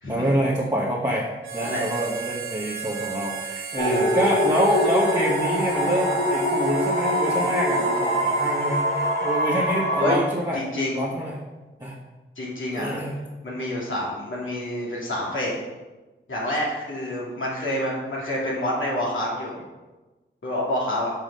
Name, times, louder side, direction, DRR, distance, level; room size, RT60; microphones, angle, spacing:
voice 1, 0.1-1.3 1.5-10.7 10.9-11.4 11.8-12.0 12.7-13.2, right 1 dB, 20° right, -6 dB, 1.5 m, -26 dB
Harmonica, 1.4-9.5, right 6 dB, 75° right, 1.0 m, -36 dB
sound 1, 3.8-10.1, equal, 35° left, 2.1 m, -23 dB
voice 2, 10.5-11.0 12.4-12.9 13.4-15.5 16.3-19.6 20.4-21.1, left 1 dB, 75° left, -4 dB, 2.5 m, -27 dB
5.7 x 5.7 x 5.3 m, 1.2 s
cardioid pair, 55°, 21 cm